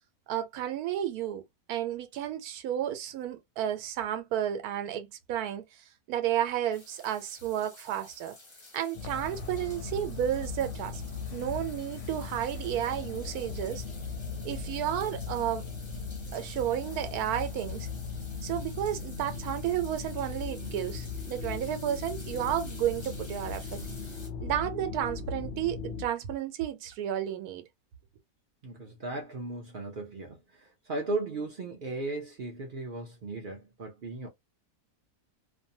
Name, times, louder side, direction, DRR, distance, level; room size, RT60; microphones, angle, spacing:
voice 1, 0.3-1.4 1.7-8.4 8.7-11.0 11.3-13.8 14.4-15.6 16.3-17.9 18.4-23.8 24.4-27.6, right 11 dB, 85° right, 1.1 m, -32 dB
sound 1, 6.7-24.3, left 2 dB, 30° left, 0.5 m, -52 dB
sound 2, 8.9-26.1, left 4 dB, 65° left, 0.8 m, -38 dB
voice 2, 28.6-34.3, right 2 dB, 55° right, 0.6 m, -36 dB
2.6 x 2.1 x 2.7 m
omnidirectional pair, 1.6 m